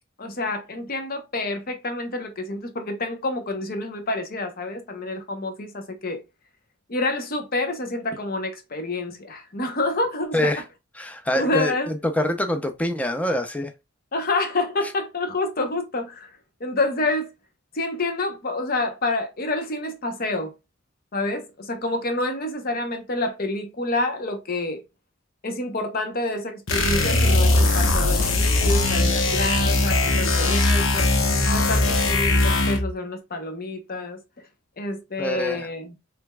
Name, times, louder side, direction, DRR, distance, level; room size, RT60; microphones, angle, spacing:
voice 1, 0.2-6.2 6.9-10.5 11.3-11.9 14.1-16.3 16.6-17.3 17.7-20.5 21.1-24.8 25.4-31.1 31.5-34.2 34.8-35.9, left 2 dB, 45° left, 0.9 m, -28 dB
voice 2, 11.0-13.7 35.2-35.7, left 1 dB, 5° left, 0.6 m, -25 dB
sound 1, 26.7-32.9, left 2 dB, 75° left, 1.0 m, -20 dB
5.0 x 3.4 x 2.3 m
head